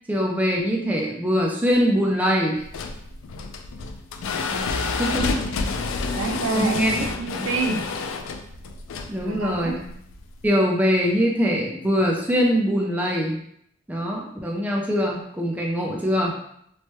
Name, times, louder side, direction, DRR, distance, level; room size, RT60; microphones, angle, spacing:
voice 1, 0.1-2.6 4.5-5.3 6.5-6.9 7.3-7.5 9.1-9.9 10.4-13.4 13.9-16.4, equal, 10° right, -1 dB, 0.4 m, -23 dB
sound 1, 2.6-10.5, left 4 dB, 70° left, 0.3 m, -29 dB
voice 2, 6.2-7.8 9.3-9.8, right 3 dB, 70° right, 4 dB, 0.4 m, -27 dB
3.0 x 2.2 x 2.9 m, 0.70 s
head